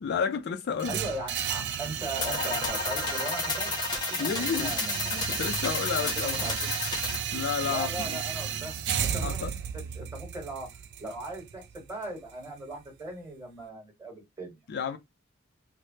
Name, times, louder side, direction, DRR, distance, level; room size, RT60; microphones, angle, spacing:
voice 1, 0.0-1.0 4.2-4.8 5.1-6.5 7.3-8.2 9.2-9.5 14.7-15.0, left 6 dB, 55° left, 0.3 m, -31 dB
sound 1, 0.8-12.8, right 8 dB, 55° right, 0.4 m, -34 dB
voice 2, 0.9-3.7 4.1-5.4 6.0-6.7 7.6-8.8 9.0-9.4 9.7-10.7 11.0-14.6, right 2 dB, 15° right, 1.3 m, -39 dB
insect city, 2.2-7.2, left 3 dB, 20° left, 0.7 m, -32 dB
3.2 x 2.1 x 2.7 m
head